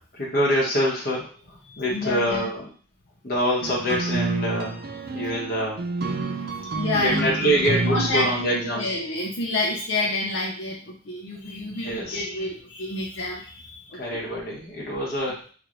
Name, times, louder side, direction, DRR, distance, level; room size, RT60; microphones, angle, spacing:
voice 1, 0.1-1.3 1.8-2.7 3.2-4.8 5.1-5.8 6.9-8.9 11.8-12.2 14.0-15.5, equal, 50° left, -4 dB, 1.1 m, -25 dB
voice 2, 1.6-2.5 6.5-7.3 7.8-14.2, left 2 dB, 70° left, -5 dB, 0.6 m, -29 dB
sound 1, 3.6-9.0, right 3 dB, 50° right, 0.4 m, -29 dB
2.9 x 2.6 x 3.0 m, 0.40 s
head